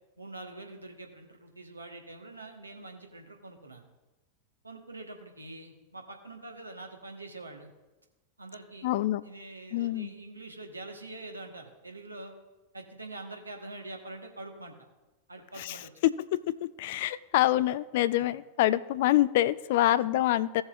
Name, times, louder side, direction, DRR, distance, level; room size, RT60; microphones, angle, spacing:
voice 1, 0.2-3.9 4.6-7.7 8.4-8.9 9.2-12.3 12.7-14.7 15.3-15.9 17.5-17.6 20.0-20.1, right 2 dB, 80° right, 2 dB, 1.3 m, -45 dB
voice 2, 8.8-9.2 9.7-10.1 15.6-20.6, left 14 dB, 50° left, 17 dB, 0.4 m, -26 dB
16.5 x 7.0 x 2.5 m, 1.1 s
figure-of-eight pair, 90°, 0 cm